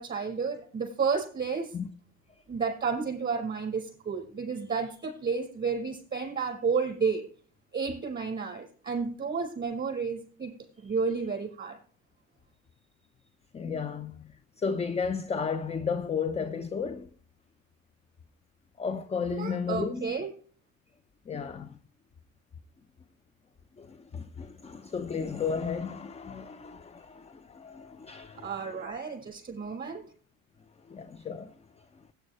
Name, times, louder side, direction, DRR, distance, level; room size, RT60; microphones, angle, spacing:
voice 1, 0.0-1.7 2.5-7.3 7.7-10.5 10.8-11.8 19.3-20.3 28.3-30.0, right 5 dB, 25° right, 5.3 m, -31 dB
voice 2, 13.5-14.3 14.6-17.1 18.8-20.2 21.3-21.7 23.8-28.5 30.9-31.5, left 6 dB, 15° left, 0.6 m, -33 dB
16.0 x 9.0 x 3.2 m
hypercardioid pair, 75°, 39 cm